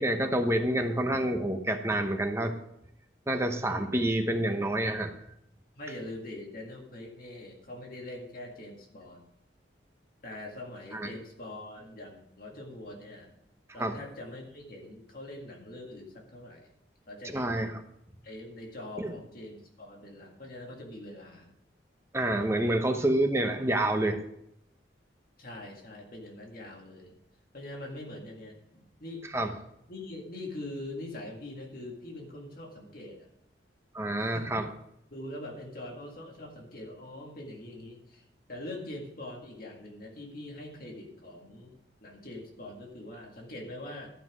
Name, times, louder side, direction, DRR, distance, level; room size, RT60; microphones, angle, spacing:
voice 1, 0.0-2.5 3.3-5.1 10.9-11.0 13.8-13.9 17.3-17.7 19.0-19.1 22.1-24.2 29.3-29.5 33.9-34.7, right 1 dB, 15° right, 5 dB, 0.9 m, -28 dB
voice 2, 5.8-9.2 10.2-13.3 13.7-16.7 17.1-17.7 18.2-21.5 25.4-27.2 27.5-29.3 29.9-33.3 34.2-34.6 35.1-44.1, left 1 dB, 50° left, 0 dB, 1.9 m, -43 dB
12.5 x 5.8 x 6.1 m, 0.78 s
head